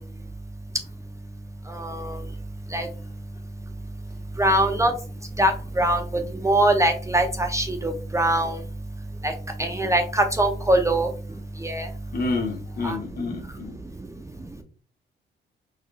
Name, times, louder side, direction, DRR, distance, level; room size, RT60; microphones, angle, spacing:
voice 1, 1.7-2.2 2.7-2.9 4.4-4.9 5.4-6.0 6.4-8.6 9.2-9.3 9.6-11.1 11.6-11.9 12.8-13.0, right 1 dB, 15° right, 4 dB, 0.6 m, -22 dB
voice 2, 12.1-13.8, left 3 dB, 50° left, 3 dB, 1.2 m, -29 dB
4.0 x 2.5 x 3.2 m, 0.37 s
cardioid pair, 90°, 20 cm